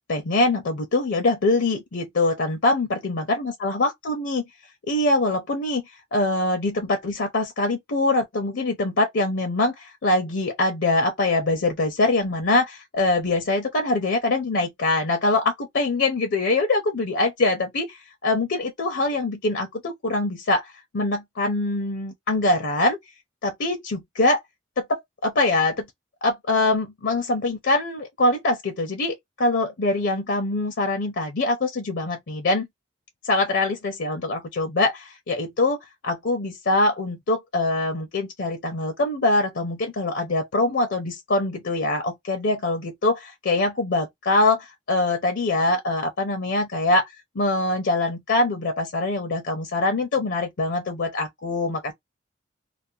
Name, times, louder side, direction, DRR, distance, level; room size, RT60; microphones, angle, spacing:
voice 1, 0.1-4.4 4.9-5.8 6.1-23.0 23.4-24.4 24.8-25.8 26.2-32.7 33.2-35.8 36.0-51.9, left 2 dB, 60° left, 0.6 m, -23 dB
2.4 x 2.0 x 2.6 m
head